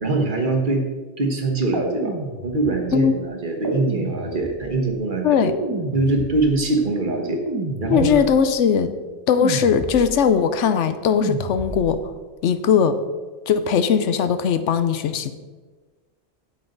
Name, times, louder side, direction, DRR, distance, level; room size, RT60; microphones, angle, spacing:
voice 1, 0.0-0.8 1.2-2.1 2.4-5.5 5.9-7.4 7.8-8.2, right 2 dB, 45° right, 2 dB, 1.3 m, -23 dB
sound 1, 1.7-2.9 3.6-4.8 5.6-6.7 7.5-8.5 9.4-10.3 11.2-12.1, right 2 dB, 25° right, 0.9 m, -30 dB
voice 2, 5.2-5.6 7.9-8.9 9.3-12.0 12.4-13.0 13.5-15.3, left 7 dB, 90° left, 11 dB, 1.0 m, -19 dB
8.7 x 8.1 x 3.9 m, 1.3 s
omnidirectional pair, 1.2 m